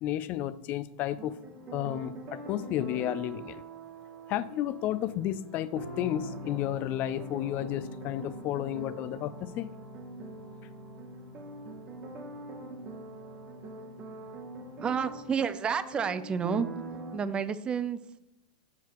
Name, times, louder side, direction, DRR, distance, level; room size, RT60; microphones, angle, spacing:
voice 1, 0.0-1.4 1.7-3.6 4.3-9.7, left 12 dB, 45° left, 15 dB, 0.4 m, -32 dB
sound 1, 1.2-17.2, right 2 dB, 40° right, 1.0 m, -43 dB
voice 2, 14.8-16.7 17.1-18.2, right 6 dB, 25° right, 13 dB, 0.4 m, -30 dB
7.5 x 5.6 x 3.0 m, 0.85 s
hypercardioid pair, 100°, 4 cm